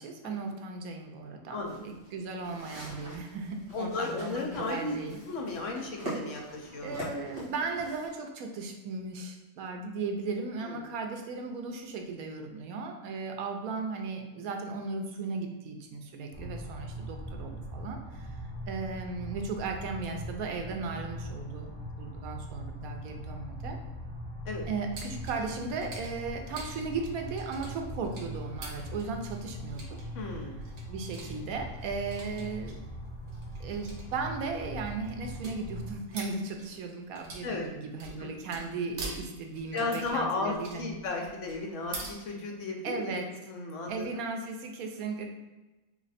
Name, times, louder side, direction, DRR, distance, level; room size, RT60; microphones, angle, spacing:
voice 1, 0.0-5.2 6.8-18.3 18.7-23.8 24.7-30.0 30.9-32.8 33.6-41.0 42.8-43.3 43.9-45.3, right 4 dB, 80° right, 3 dB, 1.1 m, -36 dB
sound 1, 1.6-8.1, right 1 dB, 40° right, 1.8 m, -43 dB
voice 2, 3.7-5.0 5.3-7.1 10.6-10.8 24.4-24.6 30.1-30.6 37.4-37.7 38.2-38.3 39.7-43.2 43.5-44.1, left 3 dB, 65° left, 1 dB, 0.9 m, -34 dB
sound 2, 16.3-36.0, equal, 15° left, 0.5 m, -41 dB
sound 3, 24.9-42.1, right 3 dB, 60° right, 1.0 m, -46 dB
3.2 x 2.8 x 4.0 m, 1.1 s
omnidirectional pair, 1.5 m